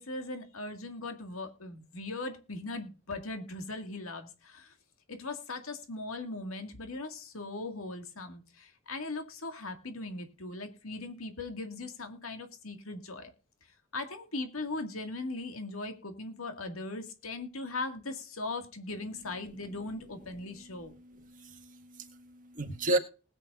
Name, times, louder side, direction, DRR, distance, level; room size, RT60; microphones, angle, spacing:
voice 1, 0.0-4.7 5.1-13.3 13.9-20.9, left 2 dB, 85° left, 2.1 m, -39 dB
voice 2, 21.3-23.0, right 2 dB, 40° right, 1.7 m, -32 dB
20.5 x 8.2 x 2.5 m
head